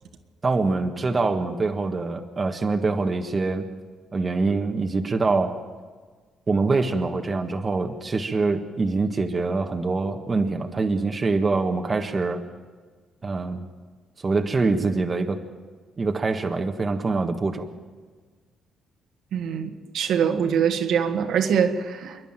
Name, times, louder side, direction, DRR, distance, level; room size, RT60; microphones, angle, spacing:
voice 1, 0.4-3.6 4.1-5.6 6.5-12.4 13.2-13.6 14.2-15.4 16.0-17.7, right 3 dB, 30° right, 4 dB, 1.5 m, -24 dB
voice 2, 19.3-22.2, right 7 dB, 75° right, 4 dB, 1.9 m, -23 dB
26.5 x 11.0 x 9.1 m, 1.5 s
cardioid pair, 90°, 0 cm